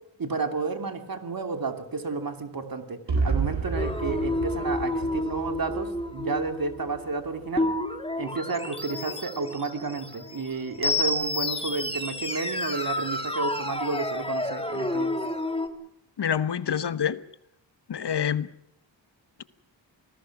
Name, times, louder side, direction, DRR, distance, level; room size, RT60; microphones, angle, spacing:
voice 1, 0.2-7.7 8.2-15.1, right 4 dB, 50° right, 7 dB, 2.8 m, -31 dB
sound 1, 3.1-7.0, right 4 dB, 70° right, 4.2 m, -31 dB
sound 2, 3.7-15.7, left 2 dB, 10° left, 2.6 m, -30 dB
voice 2, 16.2-17.2 17.9-18.5, left 8 dB, 65° left, 14 dB, 1.2 m, -26 dB
27.0 x 19.5 x 6.1 m, 0.74 s
wide cardioid pair, 130°, 45 cm